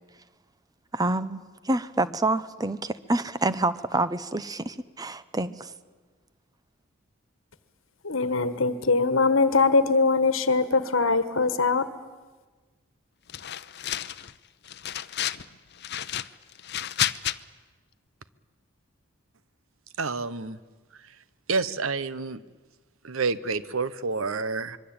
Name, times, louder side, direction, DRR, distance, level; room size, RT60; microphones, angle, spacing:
voice 1, 0.9-5.7, right 2 dB, 20° right, 14 dB, 0.8 m, -27 dB
voice 2, 8.0-11.9, left 4 dB, 75° left, 12 dB, 1.4 m, -22 dB
sound 1, 13.3-14.3 14.7-15.4 15.8-17.4, left 11 dB, 55° left, 0.7 m, -31 dB
voice 3, 20.0-20.6 21.5-22.4 23.0-24.8, right 4 dB, 80° right, 15 dB, 1.0 m, -28 dB
25.5 x 22.5 x 8.8 m, 1.4 s
head